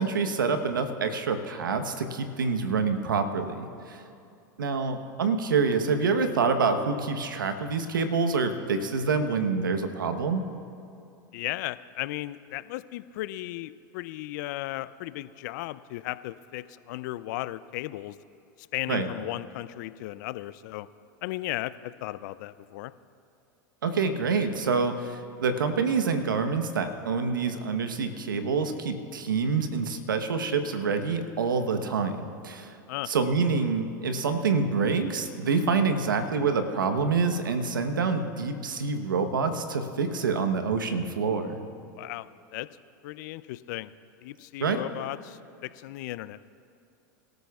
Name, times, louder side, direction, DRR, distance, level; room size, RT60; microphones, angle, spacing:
voice 1, 0.0-4.0 4.6-10.4 18.9-19.1 23.8-32.7 33.1-41.6 44.6-44.8, right 4 dB, 90° right, 7 dB, 1.0 m, -27 dB
voice 2, 11.3-18.2 18.6-20.9 21.2-22.9 32.9-33.1 42.0-42.7 43.0-43.9 44.2-46.5, left 16 dB, 65° left, 16 dB, 0.4 m, -36 dB
24.0 x 13.5 x 2.4 m, 2.5 s
hypercardioid pair, 100°, 11 cm